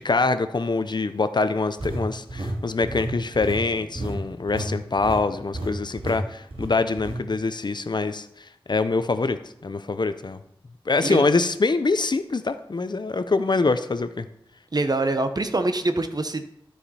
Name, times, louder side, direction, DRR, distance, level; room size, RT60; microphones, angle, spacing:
voice 1, 0.0-10.4 10.9-14.3, left 3 dB, 50° left, 11 dB, 0.6 m, -24 dB
sound 1, 1.8-4.7 5.0-5.2 5.5-5.7 6.0-6.2 6.5-7.2, right 1 dB, 70° right, 2.4 m, -31 dB
voice 2, 14.7-16.5, right 2 dB, 45° right, 9 dB, 0.9 m, -24 dB
13.0 x 5.0 x 4.2 m, 0.74 s
wide cardioid pair, 75°, 9 cm